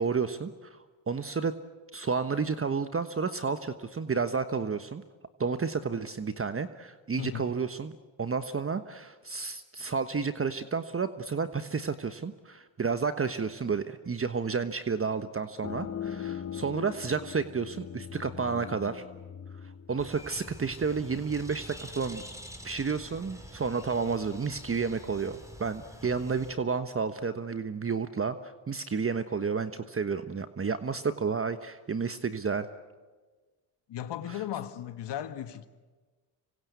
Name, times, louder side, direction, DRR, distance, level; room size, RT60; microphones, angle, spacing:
voice 1, 0.0-1.6 1.9-5.0 5.4-19.1 19.6-22.2 22.6-32.7 34.3-34.4, right 5 dB, 30° right, 1.3 m, -31 dB
voice 2, 7.2-7.5 33.9-35.7, left 11 dB, 65° left, 1.8 m, -36 dB
sound 1, 15.6-21.0, left 8 dB, 35° left, 1.0 m, -41 dB
Bird, 20.0-26.5, equal, 5° right, 4.8 m, -46 dB
26.5 x 24.5 x 8.3 m
supercardioid pair, 65°, 45 cm